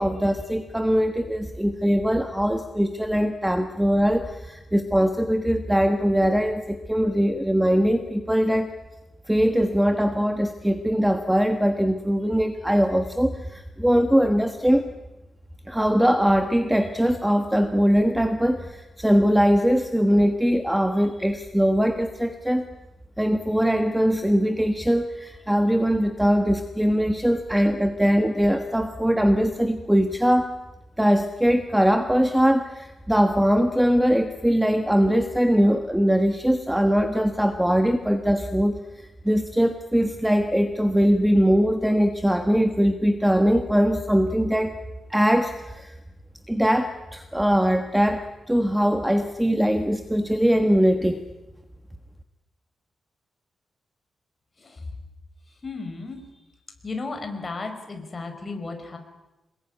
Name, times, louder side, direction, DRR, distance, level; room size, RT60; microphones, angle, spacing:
voice 1, 0.0-8.7 9.3-14.8 15.7-22.6 23.2-30.5 31.0-38.8 39.2-44.7 45.1-45.9 46.5-51.2, equal, 5° right, 7 dB, 1.3 m, -21 dB
voice 2, 55.5-56.5 56.8-59.0, left 3 dB, 25° left, 5 dB, 5.1 m, -35 dB
27.5 x 21.5 x 10.0 m, 1.0 s
wide cardioid pair, 160°, 0 cm